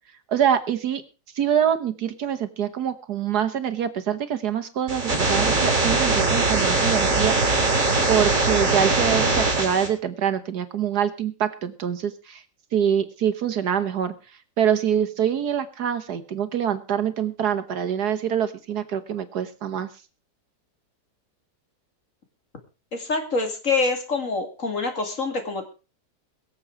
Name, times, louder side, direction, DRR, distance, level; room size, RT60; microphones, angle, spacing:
voice 1, 0.3-1.0 1.3-7.4 8.1-12.4 12.7-14.1 14.6-19.9, right 9 dB, 65° right, 11 dB, 1.6 m, -25 dB
sound 1, 4.9-9.9, right 3 dB, 45° right, 4.9 m, -21 dB
voice 2, 22.9-25.7, left 3 dB, 45° left, 5 dB, 2.8 m, -26 dB
22.5 x 7.6 x 4.8 m, 0.33 s
omnidirectional pair, 1.9 m